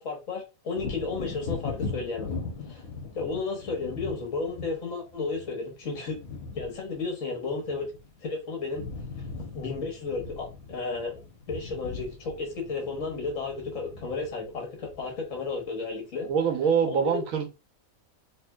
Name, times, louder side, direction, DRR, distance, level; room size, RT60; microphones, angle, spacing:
voice 1, 0.0-2.3 2.6-2.8 3.1-6.2 6.5-7.9 8.2-8.9 9.5-11.1 11.5-16.3 16.8-17.2, left 4 dB, 65° left, 1.7 m, -33 dB
Wind / Thunder, 0.7-8.3 8.6-15.8 16.2-16.4, left 4 dB, 80° left, 1.4 m, -40 dB
voice 2, 16.3-17.5, right 7 dB, 75° right, 1.2 m, -24 dB
4.3 x 3.0 x 2.3 m
omnidirectional pair, 1.5 m